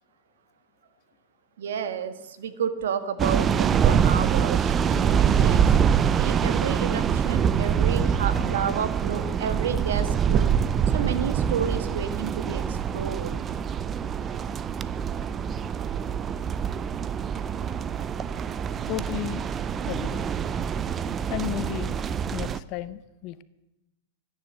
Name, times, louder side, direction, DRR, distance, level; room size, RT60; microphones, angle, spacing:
voice 1, 1.6-5.7 6.1-10.5 10.9-13.3, right 7 dB, 80° right, 11 dB, 1.5 m, -31 dB
sound 1, 3.2-22.6, right 7 dB, 20° right, 0.5 m, -25 dB
voice 2, 18.9-19.5 19.9-20.2 21.3-22.0 22.3-23.4, left 14 dB, 40° left, 15 dB, 0.6 m, -33 dB
14.5 x 9.8 x 7.7 m, 0.96 s
supercardioid pair, 150°, 0 cm